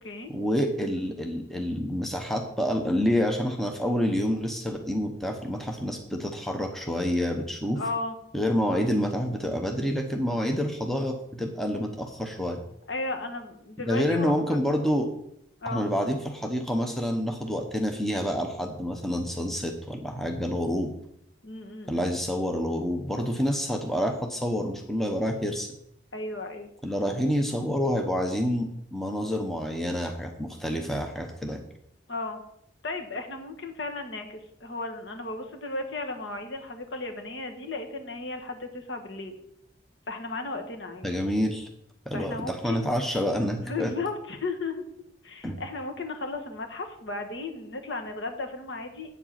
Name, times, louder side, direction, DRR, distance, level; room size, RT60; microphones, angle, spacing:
voice 1, 0.3-7.8 8.3-12.6 13.9-15.1 15.7-20.9 21.9-25.7 26.8-31.6 41.0-41.7 42.1-43.9 45.4-45.6, equal, ahead, 3 dB, 0.9 m, -28 dB
voice 2, 7.7-8.1 12.9-14.6 15.6-15.8 21.4-22.1 26.1-26.7 32.1-32.4 32.8-39.3 40.1-41.1 42.1-42.9 43.6-44.8 45.2-49.1, left 3 dB, 65° left, 4 dB, 1.5 m, -35 dB
8.2 x 7.5 x 5.8 m, 0.75 s
head